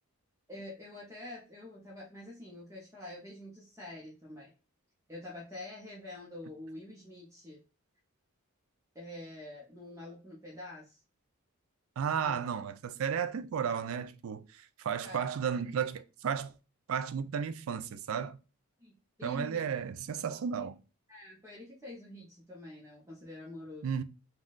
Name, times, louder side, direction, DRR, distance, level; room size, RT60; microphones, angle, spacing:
voice 1, 0.5-4.5 5.1-7.6 8.9-11.0 12.1-12.4 15.0-15.3 18.8-18.9 19.2-19.6 21.1-23.9, left 1 dB, 15° right, 0.8 m, -46 dB
voice 2, 12.0-16.5 16.9-18.4 19.2-20.8 23.8-24.0, right 7 dB, 65° right, 0.3 m, -33 dB
3.6 x 2.3 x 2.4 m
head